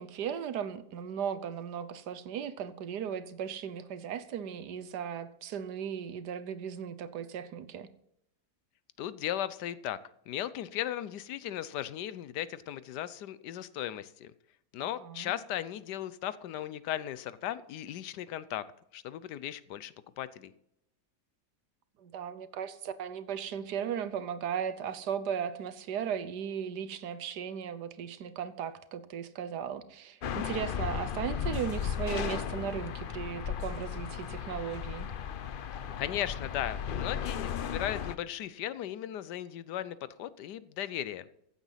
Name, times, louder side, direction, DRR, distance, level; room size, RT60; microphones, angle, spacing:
voice 1, 0.0-7.9 14.8-15.3 22.0-35.1, right 8 dB, 80° right, 11 dB, 1.4 m, -37 dB
voice 2, 9.0-10.0 10.3-14.3 14.7-18.6 18.9-20.5 36.0-41.3, left 11 dB, 90° left, 16 dB, 1.3 m, -37 dB
sound 1, 30.2-38.2, left 8 dB, 75° left, 0.5 m, -35 dB
15.5 x 8.1 x 5.7 m, 0.77 s
omnidirectional pair, 1.7 m